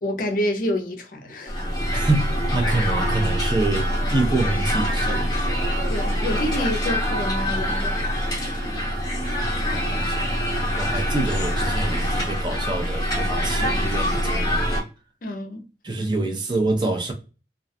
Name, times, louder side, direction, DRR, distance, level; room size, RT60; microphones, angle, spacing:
voice 1, 0.0-1.6 5.9-8.8 15.2-15.7, left 1 dB, 50° left, 0.4 m, -28 dB
sound 1, 1.5-14.8, equal, 20° left, 0.8 m, -24 dB
voice 2, 1.9-5.3 9.7-14.7 15.8-17.1, right 2 dB, 25° right, 0.4 m, -26 dB
2.3 x 2.2 x 2.6 m
head